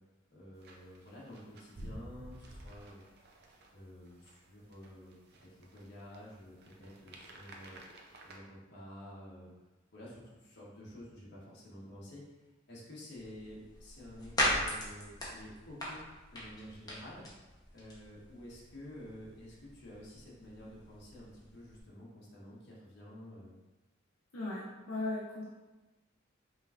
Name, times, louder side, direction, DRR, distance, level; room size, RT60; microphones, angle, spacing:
voice 1, 0.3-3.0 3.7-5.1 5.5-7.8 8.2-9.5 9.9-12.2 12.7-16.0 16.3-17.3 17.7-23.6, left 1 dB, 60° left, -6 dB, 1.3 m, -50 dB
sound 1, 0.6-8.4, right 1 dB, 55° right, 0.6 m, -53 dB
sound 2, 13.1-21.8, left 1 dB, 20° left, 0.9 m, -40 dB
voice 2, 24.3-25.4, left 2 dB, 85° left, -6 dB, 0.7 m, -37 dB
5.4 x 3.2 x 2.5 m, 1.1 s
head